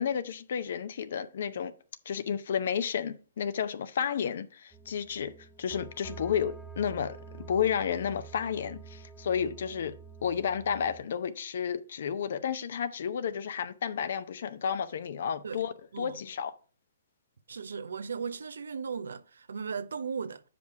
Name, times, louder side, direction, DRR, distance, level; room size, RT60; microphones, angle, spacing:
voice 1, 0.0-1.7 2.1-5.3 5.6-16.5, left 7 dB, 65° left, 0.7 m, -32 dB
sound 1, 4.7-11.0, right 5 dB, 5° left, 0.6 m, -48 dB
voice 2, 17.5-20.4, right 6 dB, 80° right, 0.7 m, -37 dB
6.9 x 5.1 x 4.7 m
hypercardioid pair, 140°, 0 cm